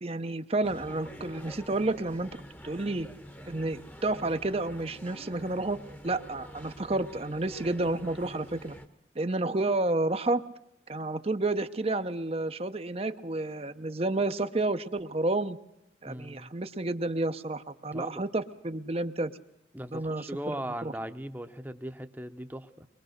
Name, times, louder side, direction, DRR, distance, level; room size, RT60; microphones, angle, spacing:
voice 1, 0.0-2.3 2.6-3.1 3.4-5.8 6.0-8.8 9.2-10.4 10.9-15.6 16.0-19.3 19.9-20.2 20.8-20.9, right 2 dB, 30° right, 9 dB, 0.7 m, -30 dB
sound 1, 0.6-8.9, equal, 10° left, 1.0 m, -47 dB
voice 2, 16.1-16.5 17.8-18.2 19.7-22.9, right 1 dB, 10° right, 8 dB, 0.9 m, -39 dB
22.5 x 22.0 x 6.6 m, 0.82 s
head